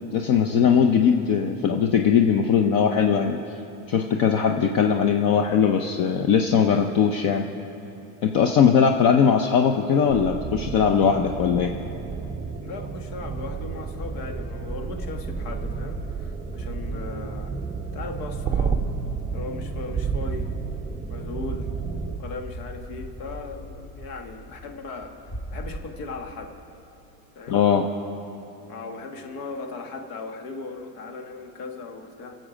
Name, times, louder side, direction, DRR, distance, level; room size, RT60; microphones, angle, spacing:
voice 1, 0.1-3.4 3.9-7.4 8.2-11.7 27.5-27.9, left 7 dB, 45° left, 4 dB, 0.7 m, -20 dB
sound 1, 10.1-22.2, right 6 dB, 15° right, 0.4 m, -31 dB
voice 2, 12.6-17.5 17.9-18.8 19.3-20.5 21.1-21.7 22.2-26.5 27.3-27.6 28.7-32.4, left 3 dB, 80° left, 5 dB, 1.6 m, -37 dB
sound 2, 12.6-25.8, equal, 30° left, 1.9 m, -39 dB
22.5 x 7.7 x 5.1 m, 2.9 s
supercardioid pair, 125°, 46 cm